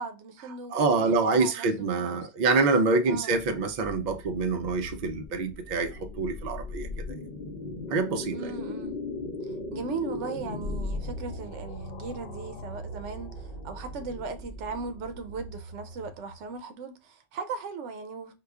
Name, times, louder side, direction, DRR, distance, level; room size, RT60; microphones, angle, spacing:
voice 1, 0.0-2.2 3.1-3.4 8.3-8.9 9.7-18.4, right 4 dB, 85° right, 0.9 m, -38 dB
voice 2, 0.7-6.9 7.9-8.5 9.2-9.3, right 3 dB, 55° right, 0.5 m, -26 dB
sound 1, 3.4-16.5, left 2 dB, 55° left, 0.8 m, -38 dB
4.8 x 2.2 x 2.3 m
omnidirectional pair, 1.2 m